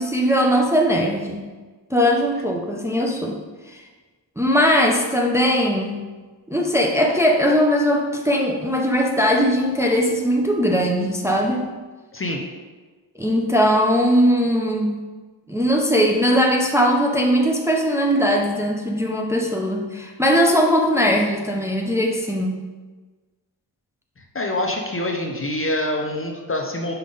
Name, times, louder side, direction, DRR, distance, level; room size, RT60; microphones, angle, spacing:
voice 1, 0.0-1.4 1.9-3.4 3.7-3.8 4.4-6.0 6.5-11.7 13.2-15.0 15.5-22.6, equal, 5° right, 0 dB, 0.6 m, -20 dB
voice 2, 24.3-26.9, left 1 dB, 30° left, 2 dB, 0.7 m, -25 dB
5.6 x 4.8 x 3.9 m, 1.3 s
wide cardioid pair, 95°, 45 cm